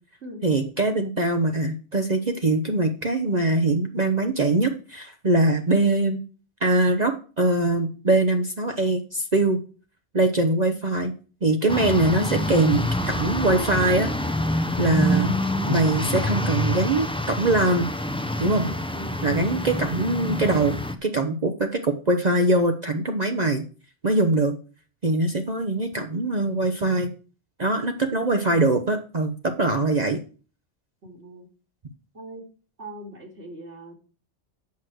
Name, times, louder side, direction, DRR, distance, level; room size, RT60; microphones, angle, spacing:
voice 1, 0.4-6.2 6.6-9.6 10.1-11.1 11.4-14.1 14.8-15.3 15.7-17.9 18.4-18.7 19.2-20.8 21.0-23.6 24.0-24.6 25.0-27.1 27.6-30.2, right 2 dB, 40° right, 4 dB, 1.0 m, -22 dB
sound 1, 11.7-20.9, left 1 dB, 5° left, 0.6 m, -26 dB
voice 2, 18.5-19.3 31.0-31.5 32.1-32.4 32.8-33.9, right 1 dB, 70° right, 0 dB, 3.2 m, -40 dB
8.5 x 6.4 x 6.2 m, 0.37 s
omnidirectional pair, 1.2 m